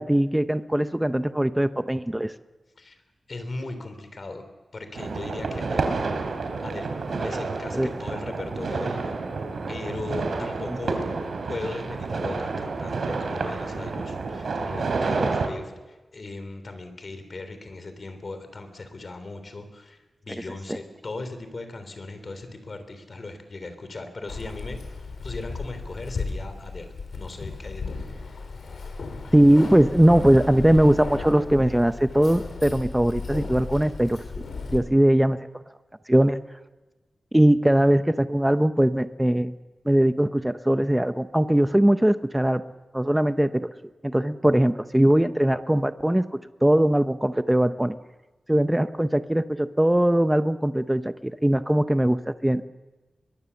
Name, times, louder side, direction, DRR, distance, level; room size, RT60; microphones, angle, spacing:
voice 1, 0.0-2.3 7.7-7.9 29.3-34.4 34.7-35.4 36.1-36.4 37.3-39.5 39.9-42.6 42.9-43.7 44.0-46.2 46.6-48.0 48.5-52.7, right 1 dB, 10° right, 11 dB, 0.7 m, -20 dB
voice 2, 3.3-4.4 4.7-5.9 6.2-6.3 6.6-9.2 9.7-11.0 11.5-24.8 25.2-28.0, left 2 dB, 45° left, 8 dB, 3.4 m, -38 dB
sound 1, 4.9-15.5, right 4 dB, 80° right, 3.1 m, -29 dB
Keys jangling, 24.3-34.8, left 4 dB, 80° left, 3.9 m, -35 dB
22.5 x 22.5 x 7.1 m, 1.2 s
wide cardioid pair, 145°, 0 cm